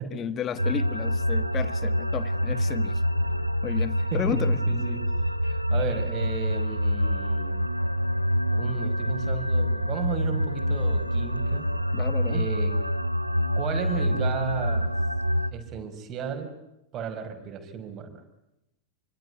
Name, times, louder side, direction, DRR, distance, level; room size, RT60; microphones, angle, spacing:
voice 1, 0.1-3.0 3.6-4.6 11.9-12.5, left 9 dB, 30° left, 14 dB, 1.6 m, -32 dB
sound 1, 0.6-15.5, equal, 90° right, 1.1 m, -26 dB
voice 2, 4.7-5.0 5.4-7.6 8.5-11.7 12.3-12.8 13.6-14.9 15.5-16.5 16.9-18.2, right 6 dB, 35° right, 6 dB, 5.6 m, -34 dB
27.5 x 25.5 x 8.1 m, 0.88 s
figure-of-eight pair, 90°, 0 cm